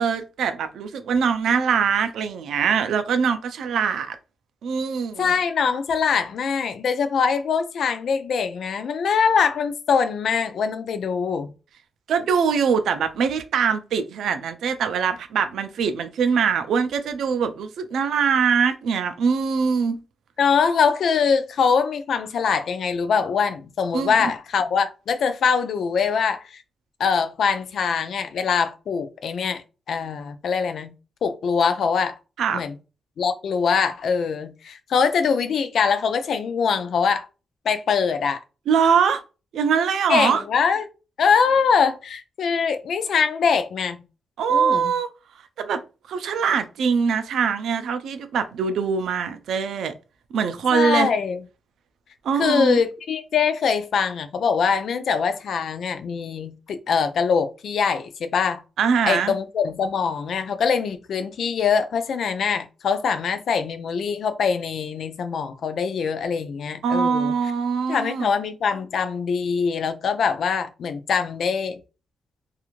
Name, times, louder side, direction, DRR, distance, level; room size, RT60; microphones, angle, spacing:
voice 1, 0.0-4.2 4.6-5.3 12.1-20.0 23.9-24.3 32.4-32.6 38.7-39.2 39.5-40.4 44.4-45.1 45.6-45.8 46.1-49.9 50.3-51.1 52.2-52.8 58.8-59.3 66.8-68.3, right 6 dB, 90° right, 0.4 m, -22 dB
voice 2, 5.2-11.5 20.4-26.6 27.0-29.6 29.9-30.9 31.2-32.1 32.5-32.8 33.2-37.3 37.7-38.4 40.1-40.9 41.2-44.0 44.5-44.9 50.7-51.4 52.4-58.6 59.0-67.3 67.9-71.8, left 6 dB, 60° left, 0.3 m, -23 dB
2.4 x 2.4 x 3.0 m
wide cardioid pair, 165°, 0 cm